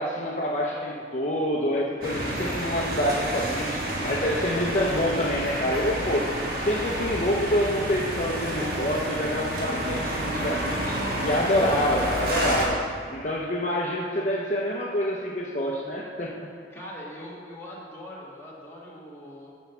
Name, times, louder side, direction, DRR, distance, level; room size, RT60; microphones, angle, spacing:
voice 1, 0.0-6.3 6.6-12.8 13.1-16.5, equal, 45° left, -3 dB, 0.7 m, -27 dB
sound 1, 2.0-12.7, right 1 dB, 55° right, 1.4 m, -29 dB
voice 2, 16.7-19.5, left 1 dB, 15° left, -6 dB, 1.6 m, -41 dB
6.3 x 5.5 x 6.9 m, 2.3 s
head